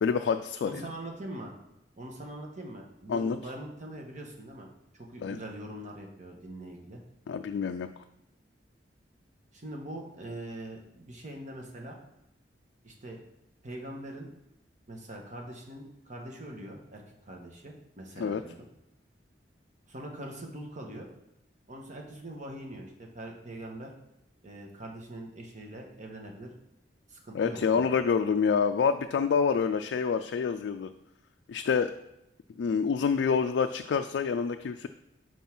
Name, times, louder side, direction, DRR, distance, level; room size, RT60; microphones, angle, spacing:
voice 1, 0.0-0.8 3.1-3.4 5.2-5.4 7.3-8.0 18.2-18.4 27.3-30.9 31.5-31.9 32.6-34.9, left 6 dB, 80° left, 6 dB, 0.3 m, -27 dB
voice 2, 0.6-1.5 2.0-4.7 4.9-7.0 9.5-12.0 12.8-13.2 13.6-14.3 14.9-18.6 19.9-21.1 21.7-23.9 24.4-26.5 27.1-28.0, right 1 dB, 45° right, 1 dB, 1.2 m, -42 dB
5.4 x 4.6 x 5.9 m, 0.86 s
head